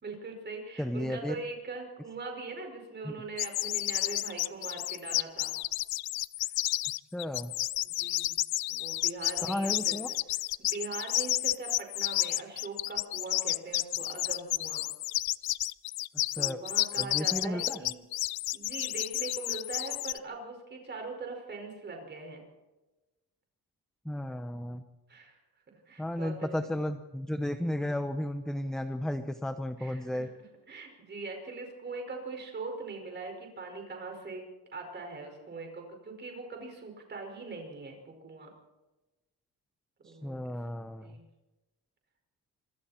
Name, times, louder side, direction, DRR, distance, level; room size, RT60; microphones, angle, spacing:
voice 1, 0.0-5.5 6.4-6.5 7.8-8.4 8.7-10.2 10.6-14.9 16.3-18.0 18.5-22.4 25.1-25.4 25.9-26.8 27.6-27.9 29.8-30.2 30.7-34.4 34.7-38.5 40.0-40.4 41.0-41.3, right 3 dB, 25° right, 2 dB, 5.3 m, -41 dB
voice 2, 0.8-1.4 3.0-3.1 7.1-7.5 9.4-10.1 16.4-16.6 17.0-17.9 24.0-24.8 26.0-30.3 40.0-41.2, left 1 dB, ahead, 8 dB, 0.7 m, -34 dB
sound 1, 3.4-20.2, left 17 dB, 65° left, 0.6 m, -31 dB
26.5 x 23.5 x 4.4 m, 1.1 s
cardioid pair, 180°, 40 cm